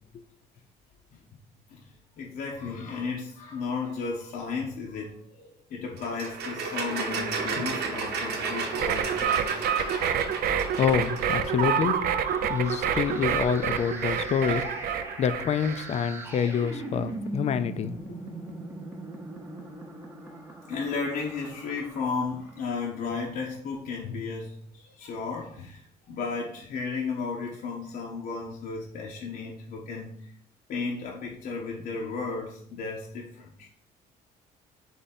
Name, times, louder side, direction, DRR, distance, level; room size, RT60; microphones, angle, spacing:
voice 1, 1.7-9.6 20.2-30.3 30.7-33.7, left 4 dB, 60° left, 0.7 m, -34 dB
sound 1, 6.0-11.7, right 4 dB, 75° right, 0.9 m, -33 dB
sound 2, 6.7-23.0, right 2 dB, 15° right, 0.8 m, -41 dB
sound 3, 8.7-15.8, right 8 dB, 60° right, 0.4 m, -28 dB
voice 2, 10.4-12.0 12.4-14.9 15.2-18.2, left 8 dB, 40° left, 0.4 m, -27 dB
3.8 x 3.3 x 4.1 m
cardioid pair, 110°, 17 cm